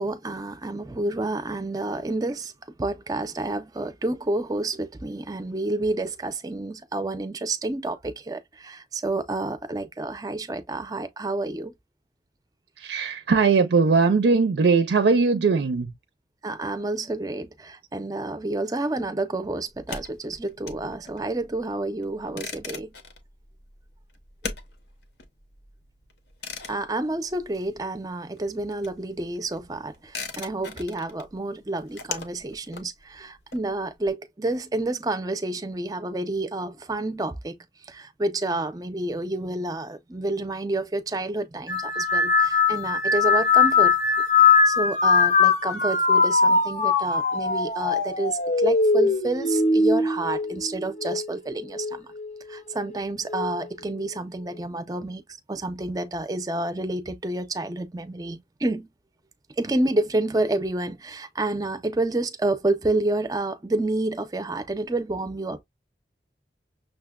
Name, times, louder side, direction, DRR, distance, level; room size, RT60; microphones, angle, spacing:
voice 1, 0.0-2.5 2.8-11.7 16.4-22.9 26.7-37.6 37.8-44.0 44.4-52.1 52.5-58.9 59.6-65.6, right 2 dB, 20° right, 0.4 m, -29 dB
voice 2, 12.8-15.9, right 4 dB, 75° right, 0.4 m, -20 dB
sound 1, 19.7-28.1 28.3-34.1, left 5 dB, 75° left, 0.8 m, -40 dB
sound 2, 41.7-51.3 51.7-52.3 53.3-53.6, left 4 dB, 40° left, 0.5 m, -21 dB
6.3 x 2.1 x 2.2 m
head